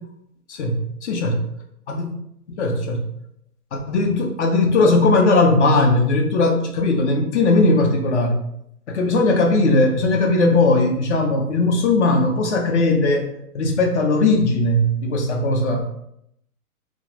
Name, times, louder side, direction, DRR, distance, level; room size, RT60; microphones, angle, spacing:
voice 1, 0.5-1.4 1.9-2.1 2.6-3.0 3.7-8.4 8.9-13.3 13.5-15.9, left 2 dB, 50° left, 2 dB, 0.6 m, -18 dB
2.5 x 2.1 x 3.0 m, 0.76 s
hypercardioid pair, 140°, 46 cm